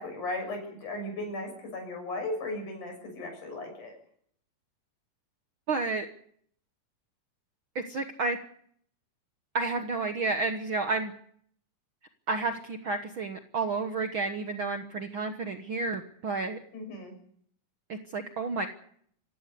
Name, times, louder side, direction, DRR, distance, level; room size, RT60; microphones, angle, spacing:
voice 1, 0.0-4.0 16.7-17.1, left 2 dB, 70° left, 4 dB, 8.2 m, -36 dB
voice 2, 5.7-6.1 7.7-8.4 9.5-11.1 12.3-16.6 17.9-18.7, right 3 dB, 55° right, 6 dB, 1.5 m, -31 dB
26.5 x 16.0 x 6.9 m, 0.65 s
omnidirectional pair, 3.7 m